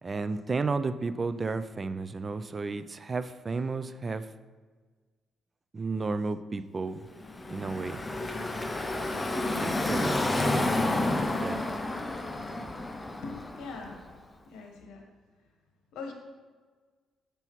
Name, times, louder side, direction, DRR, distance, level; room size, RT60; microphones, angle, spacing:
voice 1, 0.0-4.3 5.7-7.1 7.5-8.0 9.6-10.7 11.3-11.6, right 3 dB, 30° right, 11 dB, 0.3 m, -33 dB
Car passing by / Traffic noise roadway noise, 7.2-14.1, left 2 dB, 20° left, 0.6 m, -30 dB
voice 2, 13.2-14.0 14.5-15.1 15.9-16.1, left 4 dB, 85° left, 2 dB, 1.1 m, -42 dB
6.8 x 5.6 x 3.1 m, 1.4 s
cardioid pair, 90°, 0 cm